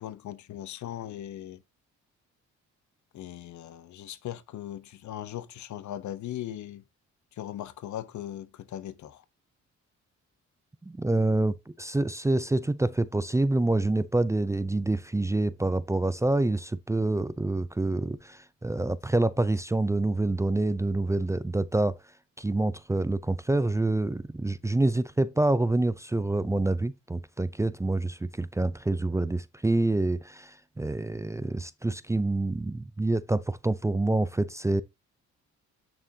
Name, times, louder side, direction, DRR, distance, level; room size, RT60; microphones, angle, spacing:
voice 1, 0.0-1.6 3.1-6.8 7.4-9.2, left 12 dB, 70° left, 1.1 m, -39 dB
voice 2, 10.8-21.9 22.4-34.8, right 2 dB, 10° right, 0.5 m, -27 dB
8.9 x 7.4 x 2.8 m
cardioid pair, 90°, 30 cm